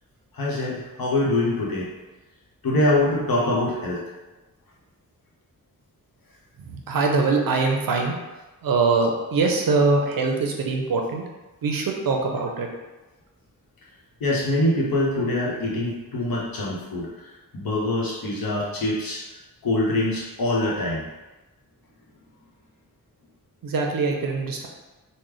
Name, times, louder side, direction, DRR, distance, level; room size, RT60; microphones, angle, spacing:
voice 1, 0.3-1.9 2.6-4.0 14.2-19.2 19.6-21.1, left 1 dB, 80° left, -4 dB, 0.9 m, -24 dB
voice 2, 6.6-8.2 8.6-11.2 11.6-12.7 23.6-24.7, right 4 dB, 75° right, 2 dB, 0.5 m, -23 dB
3.2 x 2.1 x 3.7 m, 1.1 s
wide cardioid pair, 170°, 34 cm